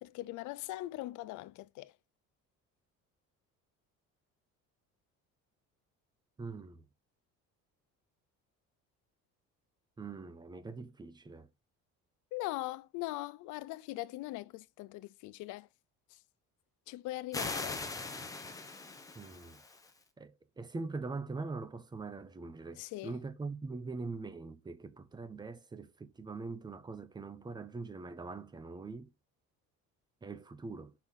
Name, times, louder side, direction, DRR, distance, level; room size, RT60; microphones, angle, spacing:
voice 1, 0.0-1.9 12.3-15.7 16.1-16.2 16.9-17.8 22.8-23.2, left 18 dB, 75° left, 0.6 m, -41 dB
voice 2, 6.4-6.9 10.0-11.5 19.1-19.6 20.2-29.1 30.2-30.9, right 3 dB, 15° right, 0.7 m, -42 dB
sound 1, 17.3-19.9, left 3 dB, 10° left, 1.0 m, -40 dB
6.4 x 4.2 x 5.6 m
cardioid pair, 160°, 30 cm